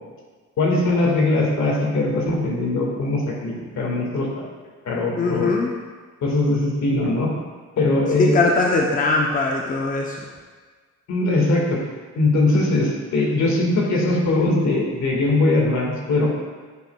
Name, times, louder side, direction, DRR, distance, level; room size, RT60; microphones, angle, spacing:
voice 1, 0.6-4.3 4.9-5.5 6.2-7.3 7.8-8.4 11.1-11.8 12.1-16.3, left 2 dB, 65° left, -2 dB, 1.7 m, -20 dB
voice 2, 5.2-5.7 8.2-10.3, left 3 dB, 25° left, -1 dB, 0.7 m, -21 dB
9.0 x 5.3 x 2.3 m, 1.4 s
cardioid pair, 90°, 30 cm